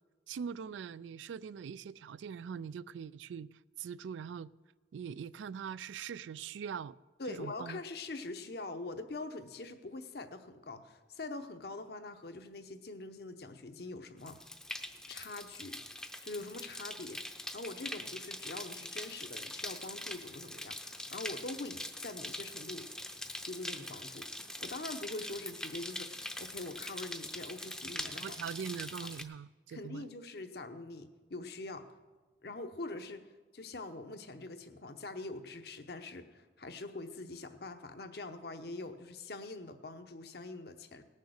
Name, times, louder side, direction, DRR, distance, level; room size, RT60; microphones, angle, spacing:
voice 1, 0.3-3.5 3.8-4.5 4.9-7.0 7.3-7.8 28.1-30.1, right 7 dB, 85° right, 0.3 m, -42 dB
voice 2, 7.2-14.4 15.1-15.8 16.2-22.8 23.4-28.4 29.0-29.1 29.7-31.9 32.4-33.2 33.5-41.0, left 2 dB, 60° left, 0.9 m, -44 dB
sound 1, 14.2-29.2, left 1 dB, 5° left, 0.6 m, -43 dB
18.5 x 6.5 x 6.5 m
head